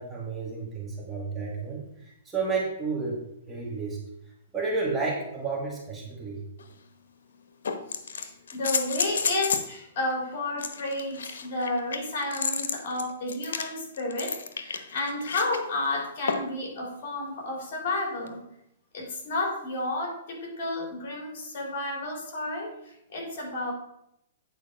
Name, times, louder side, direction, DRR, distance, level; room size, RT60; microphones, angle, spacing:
voice 1, 0.0-4.0 4.5-6.4, right 4 dB, 10° right, -3 dB, 2.1 m, -31 dB
sound 1, 6.6-6.7 7.6-9.7 10.6-15.6 16.3-16.6 18.3-18.4, left 6 dB, 80° left, 1.0 m, -31 dB
voice 2, 7.9-18.4 18.9-23.7, left 2 dB, 50° left, 0 dB, 3.6 m, -32 dB
9.2 x 4.6 x 5.7 m, 0.79 s
hypercardioid pair, 145°, 0 cm